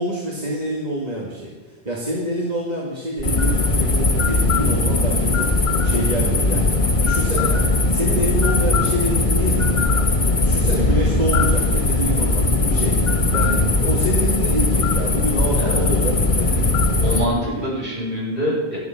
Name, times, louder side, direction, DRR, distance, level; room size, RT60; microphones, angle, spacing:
voice 1, 0.0-6.7 7.0-17.0 17.4-17.6, right 1 dB, 40° right, -4 dB, 2.3 m, -27 dB
sound 1, 3.2-17.3, left 3 dB, 50° left, 1.7 m, -19 dB
voice 2, 17.0-18.8, equal, 60° right, -5 dB, 6.4 m, -24 dB
16.0 x 12.5 x 5.9 m, 1.2 s
omnidirectional pair, 1.0 m